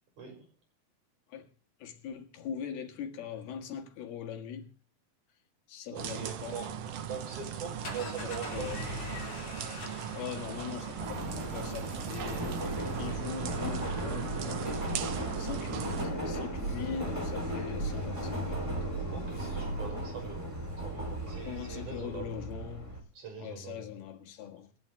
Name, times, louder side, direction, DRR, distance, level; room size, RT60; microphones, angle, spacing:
voice 1, 1.8-4.7 5.7-6.6 8.2-8.9 10.2-12.5 13.0-14.8 15.4-18.7 21.5-23.0 23.4-24.7, left 8 dB, 85° left, 3.7 m, -41 dB
voice 2, 5.9-6.7 7.1-8.9 19.1-20.5 20.8-22.3 23.2-23.9, right 6 dB, 50° right, 7.0 m, -42 dB
sound 1, 6.0-16.1, right 9 dB, 85° right, 1.4 m, -39 dB
sound 2, 7.5-13.9, left 2 dB, 40° left, 5.9 m, -44 dB
Subway metro underground, 11.0-23.0, right 1 dB, 10° right, 2.7 m, -36 dB
27.5 x 10.5 x 3.4 m
omnidirectional pair, 4.3 m